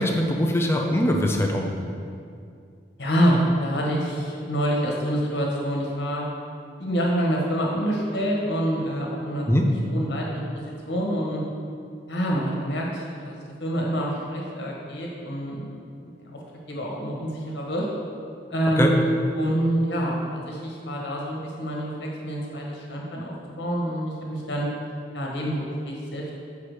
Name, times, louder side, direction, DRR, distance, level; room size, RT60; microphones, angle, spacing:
voice 1, 0.0-1.7 9.5-9.7 18.8-18.9, equal, 15° left, 2 dB, 0.6 m, -22 dB
voice 2, 3.0-6.2 6.8-11.4 12.1-15.7 16.0-16.1 16.7-17.8 18.5-24.7 25.1-26.3, equal, 70° left, -2 dB, 1.5 m, -26 dB
5.6 x 4.9 x 6.5 m, 2.4 s
head